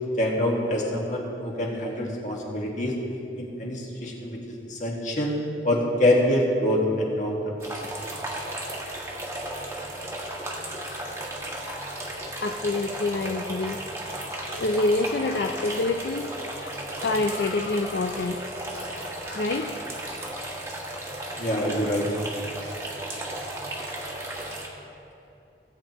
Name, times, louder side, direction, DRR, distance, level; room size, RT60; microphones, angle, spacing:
voice 1, 0.2-2.9 3.4-5.4 5.6-7.5 21.4-22.1, left 1 dB, 45° left, -2 dB, 1.7 m, -25 dB
sound 1, 7.6-24.7, right 1 dB, 15° right, 1.2 m, -35 dB
voice 2, 12.1-14.0 14.4-19.7, left 2 dB, 70° left, 3 dB, 0.4 m, -28 dB
18.0 x 8.9 x 3.0 m, 2.8 s
head